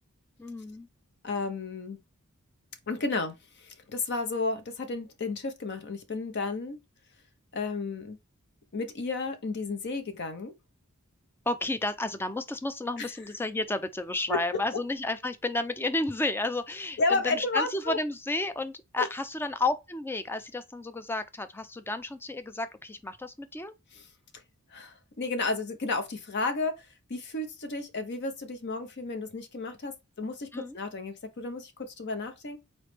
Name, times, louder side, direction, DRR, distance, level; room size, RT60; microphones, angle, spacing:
voice 1, 0.4-0.9 11.5-23.7 30.5-30.8, left 2 dB, 10° left, 0.4 m, -32 dB
voice 2, 1.2-2.0 2.9-6.8 7.5-8.2 8.7-10.5 13.0-13.1 14.3-14.4 17.0-18.0 19.0-19.1 23.9-24.0 24.7-26.7 27.1-32.6, left 3 dB, 50° left, 0.6 m, -32 dB
4.1 x 3.1 x 3.2 m
head